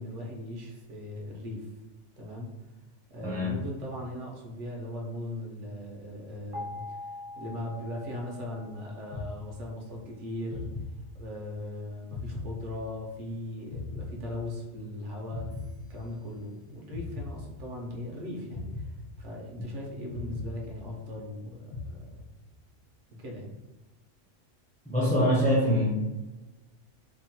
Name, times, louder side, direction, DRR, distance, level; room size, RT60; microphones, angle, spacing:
voice 1, 0.0-1.7 2.2-2.5 3.1-7.1 7.3-10.7 11.1-15.5 15.9-22.0 23.1-23.5, left 1 dB, 75° right, 0 dB, 0.9 m, -39 dB
voice 2, 3.2-3.6 24.9-25.9, equal, 10° left, -5 dB, 0.3 m, -24 dB
sound 1, 6.5-9.5, left 2 dB, 40° right, 0.5 m, -43 dB
sound 2, 9.1-10.0 10.5-11.6 12.1-13.3 13.7-14.9 15.3-16.5 16.9-18.0 18.5-19.7 20.1-21.3 21.7-22.6, left 2 dB, 65° left, 0.9 m, -40 dB
2.8 x 2.1 x 2.7 m, 1.1 s
omnidirectional pair, 1.3 m